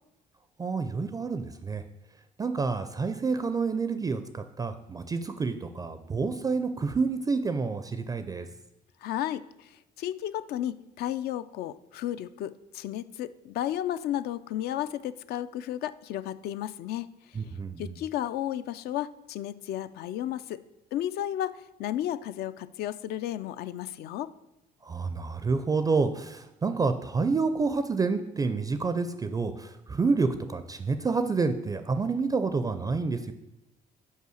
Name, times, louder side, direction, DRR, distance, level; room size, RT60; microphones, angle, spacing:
voice 1, 0.6-1.8 2.4-8.5 17.3-18.0 24.8-33.3, right 4 dB, 20° right, 10 dB, 0.4 m, -28 dB
voice 2, 9.0-17.1 17.8-20.6 20.9-24.3, left 12 dB, 70° left, 14 dB, 0.4 m, -33 dB
5.5 x 4.8 x 6.3 m, 0.88 s
cardioid pair, 110°, 17 cm